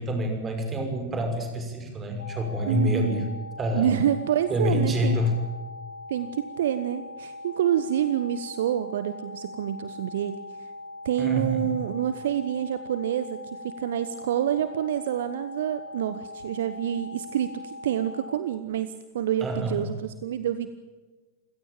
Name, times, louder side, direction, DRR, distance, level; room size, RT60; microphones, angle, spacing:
voice 1, 0.0-3.3 3.6-3.9 4.5-5.4 11.2-11.6 19.4-19.8, equal, 20° right, 5 dB, 5.9 m, -27 dB
sound 1, 2.2-18.4, left 2 dB, 75° left, 4.4 m, -41 dB
voice 2, 2.6-3.3 3.7-5.2 6.1-10.4 11.0-20.7, right 10 dB, 60° right, 13 dB, 1.1 m, -27 dB
28.0 x 16.5 x 9.0 m, 1.3 s
figure-of-eight pair, 90°, 0 cm